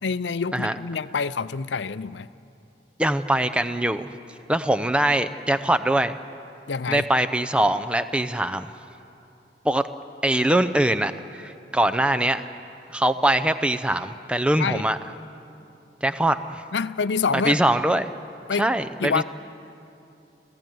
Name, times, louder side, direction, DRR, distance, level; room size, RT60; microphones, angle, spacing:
voice 1, 0.0-2.3 6.7-7.1 14.6-14.9 16.7-17.6 18.5-18.7 19.0-19.2, left 5 dB, 85° left, 0.6 m, -26 dB
voice 2, 3.0-4.1 4.5-6.2 6.9-8.7 9.6-9.9 10.2-12.4 12.9-15.0 16.0-16.6 17.3-18.1 18.6-19.2, right 1 dB, 5° right, 0.6 m, -22 dB
30.0 x 15.5 x 9.3 m
head